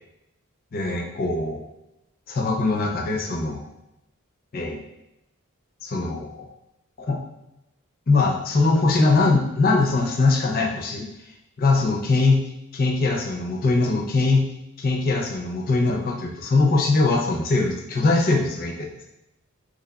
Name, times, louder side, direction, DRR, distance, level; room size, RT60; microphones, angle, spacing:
voice 1, 0.7-1.6 2.3-3.6 4.5-4.8 5.8-6.5 7.0-7.2 8.1-11.1 11.6-12.4 12.7-14.5 14.8-19.0, left 3 dB, 40° left, 1 dB, 0.5 m, -21 dB
3.9 x 3.0 x 2.2 m, 0.90 s
head